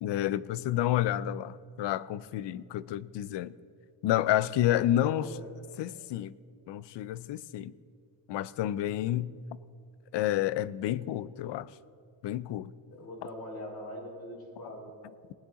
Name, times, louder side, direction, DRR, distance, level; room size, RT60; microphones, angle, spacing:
voice 1, 0.0-3.6 4.0-5.3 5.8-6.3 6.7-7.7 8.3-9.3 10.1-11.7 12.2-12.7, left 12 dB, 70° left, 0.5 m, -29 dB
voice 2, 4.9-5.4 12.9-14.9, left 1 dB, 55° left, 3.5 m, -42 dB
18.5 x 9.8 x 3.7 m
cardioid pair, 130°, 44 cm